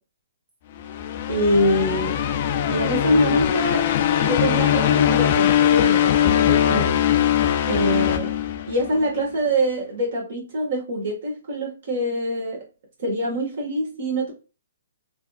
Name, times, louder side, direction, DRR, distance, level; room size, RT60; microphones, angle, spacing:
sound 1, 0.8-9.1, left 10 dB, 45° left, 0.4 m, -21 dB
voice 1, 1.3-2.2 2.7-3.9 4.2-6.9 7.7-8.3 8.7-12.6 13.0-14.3, equal, 60° right, -1 dB, 1.3 m, -24 dB
3.2 x 2.7 x 2.2 m, 0.33 s
hypercardioid pair, 140°, 0 cm